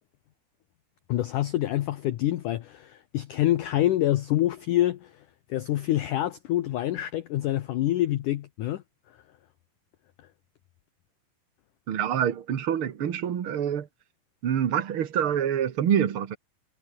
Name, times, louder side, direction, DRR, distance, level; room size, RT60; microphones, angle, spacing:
voice 1, 1.1-5.1 5.5-8.8, left 14 dB, 80° left, 1.8 m, -26 dB
voice 2, 11.9-13.9 14.4-16.4, right 9 dB, 70° right, 1.2 m, -26 dB
omnidirectional pair, 5.0 m